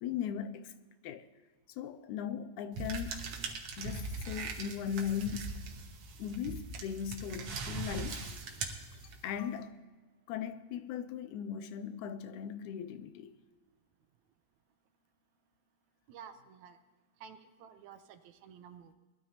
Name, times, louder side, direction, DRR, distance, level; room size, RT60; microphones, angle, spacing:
voice 1, 0.0-0.7 1.0-1.3 1.8-3.3 3.8-5.6 6.2-8.3 9.2-9.8 10.3-13.4, left 8 dB, 85° left, 2.1 m, -38 dB
sound 1, 2.7-9.4, right 4 dB, 60° right, 1.9 m, -41 dB
voice 2, 16.1-16.8 17.2-18.9, right 7 dB, 75° right, 2.0 m, -52 dB
20.5 x 12.5 x 2.9 m
omnidirectional pair, 3.4 m